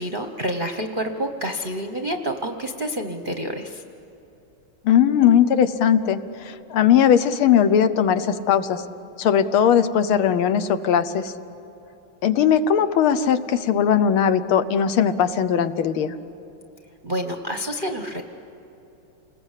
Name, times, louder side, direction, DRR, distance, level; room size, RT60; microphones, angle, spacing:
voice 1, 0.0-3.8 17.0-18.2, equal, 40° right, 5 dB, 0.8 m, -28 dB
voice 2, 4.8-8.8 9.2-11.3 12.2-16.1, left 8 dB, 80° left, 11 dB, 1.7 m, -19 dB
29.0 x 20.5 x 8.2 m, 3.0 s
omnidirectional pair, 2.3 m